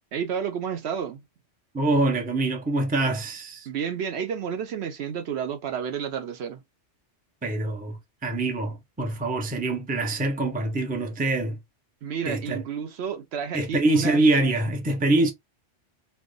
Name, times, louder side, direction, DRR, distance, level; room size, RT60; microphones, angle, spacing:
voice 1, 0.1-1.2 3.7-6.6 12.0-14.2, right 7 dB, 65° right, 0.8 m, -31 dB
voice 2, 1.7-3.7 7.4-11.6 12.3-12.6 13.5-15.3, right 2 dB, 10° right, 0.5 m, -24 dB
3.2 x 2.1 x 3.7 m
omnidirectional pair, 1.2 m